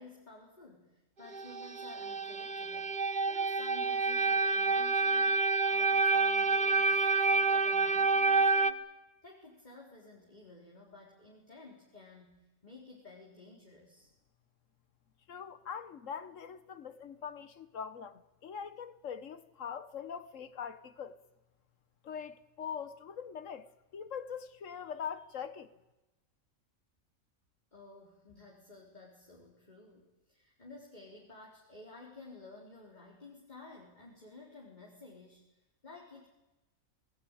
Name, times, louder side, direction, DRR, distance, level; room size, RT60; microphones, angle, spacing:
voice 1, 0.0-3.0 3.3-8.8 9.2-14.1 27.7-35.4 35.8-36.3, left 3 dB, 30° left, 4.0 m, -53 dB
sound 1, 1.3-8.7, right 4 dB, 40° right, 1.2 m, -28 dB
voice 2, 15.3-21.2 22.0-25.7, left 7 dB, 65° left, 1.6 m, -42 dB
25.0 x 20.0 x 9.0 m
omnidirectional pair, 1.4 m